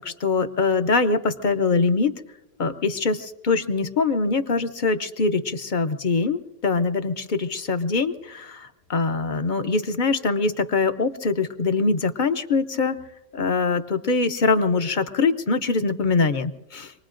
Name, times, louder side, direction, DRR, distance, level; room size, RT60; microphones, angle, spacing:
voice 1, 0.0-2.2 2.6-8.5 8.9-13.0 13.3-16.9, left 4 dB, 50° left, 9 dB, 0.7 m, -23 dB
26.0 x 19.5 x 2.5 m, 0.97 s
omnidirectional pair, 1.2 m